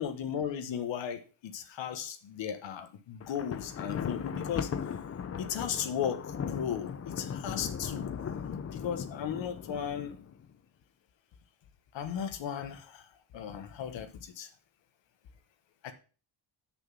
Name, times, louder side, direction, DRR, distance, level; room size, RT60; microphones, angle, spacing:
voice 1, 0.0-4.7 5.4-8.1 8.7-10.1 11.9-13.0 13.3-14.5 15.8-15.9, left 8 dB, 70° left, 8 dB, 1.4 m, -36 dB
Thunder, 3.2-10.5, left 7 dB, 30° left, 0.6 m, -38 dB
6.5 x 6.2 x 7.4 m, 0.36 s
wide cardioid pair, 170°, 47 cm